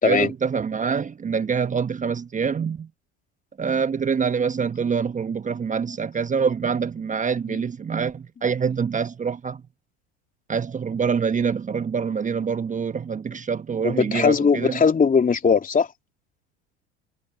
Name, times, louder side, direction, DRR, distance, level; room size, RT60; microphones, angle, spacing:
voice 1, 0.0-2.9 3.6-9.6 10.5-14.8, right 6 dB, 20° right, 1.3 m, -25 dB
voice 2, 13.8-15.9, left 5 dB, 25° left, 3.2 m, -19 dB
figure-of-eight pair, 70°, 34 cm